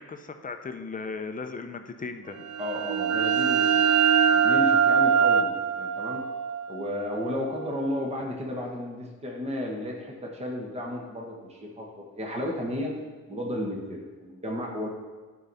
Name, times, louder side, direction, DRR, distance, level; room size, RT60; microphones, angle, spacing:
voice 1, 0.0-2.5, left 4 dB, 25° left, 7 dB, 0.7 m, -37 dB
sound 1, 2.4-7.9, right 7 dB, 55° right, 0.6 m, -23 dB
voice 2, 2.6-3.9 4.2-6.2 6.7-12.9 13.3-14.9, left 1 dB, 20° right, -1 dB, 1.4 m, -33 dB
12.0 x 4.7 x 4.2 m, 1.4 s
cardioid pair, 90°, 30 cm